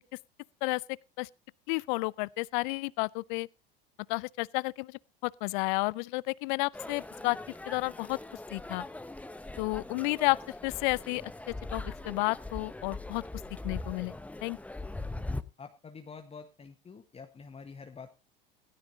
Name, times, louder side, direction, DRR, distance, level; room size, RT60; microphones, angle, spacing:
voice 1, 1.7-3.5 4.1-7.4 7.7-8.2 8.5-8.9 9.6-13.2 13.6-14.1 14.4-14.6, left 26 dB, 55° left, 0.5 m, -31 dB
sound 1, 6.7-15.4, left 2 dB, 5° left, 0.9 m, -41 dB
voice 2, 15.6-18.1, left 5 dB, 20° left, 1.5 m, -47 dB
16.5 x 13.5 x 2.8 m
hypercardioid pair, 80°, 29 cm